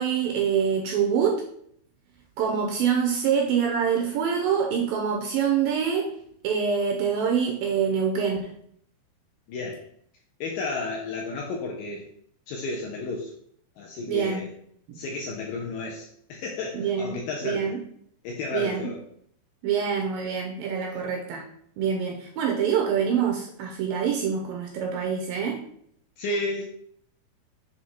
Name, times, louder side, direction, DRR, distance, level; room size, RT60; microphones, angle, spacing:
voice 1, 0.0-1.4 2.4-6.1 6.4-8.5 14.1-14.4 14.9-15.0 16.7-17.8 18.5-18.9 19.6-21.4 21.8-25.6, right 7 dB, 80° right, 1 dB, 2.1 m, -25 dB
voice 2, 9.5-9.9 10.4-12.1 12.5-13.3 13.8-14.5 14.9-17.7 18.2-19.0 20.9-21.0 26.2-26.6, left 3 dB, 80° left, -1 dB, 2.0 m, -32 dB
7.2 x 3.2 x 4.3 m, 0.67 s
omnidirectional pair, 4.7 m